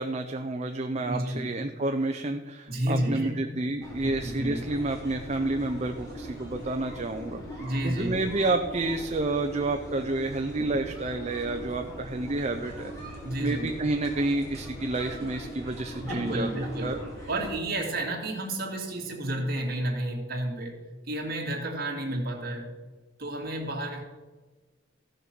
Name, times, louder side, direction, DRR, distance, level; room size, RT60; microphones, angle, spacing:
voice 1, 0.0-7.4 7.8-12.9 13.4-16.5 16.8-17.0, right 2 dB, 35° right, 5 dB, 0.6 m, -29 dB
voice 2, 1.0-1.5 2.7-3.4 4.0-4.6 7.6-8.2 10.6-10.8 13.2-13.8 16.0-20.8 21.1-22.7 23.2-24.0, right 1 dB, 55° right, 0 dB, 2.4 m, -31 dB
sound 1, 3.8-17.5, equal, 20° left, 3.6 m, -41 dB
15.0 x 6.6 x 6.0 m, 1.3 s
head